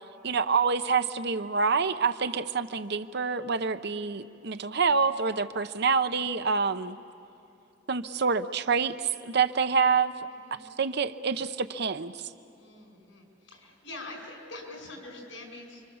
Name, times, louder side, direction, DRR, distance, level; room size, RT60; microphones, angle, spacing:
voice 1, 0.2-7.0 7.9-10.1 10.8-12.1, right 5 dB, 60° right, 10 dB, 0.8 m, -27 dB
voice 2, 10.3-10.6 12.5-15.8, left 2 dB, 90° left, 2 dB, 6.1 m, -44 dB
29.0 x 25.0 x 7.2 m, 2.8 s
head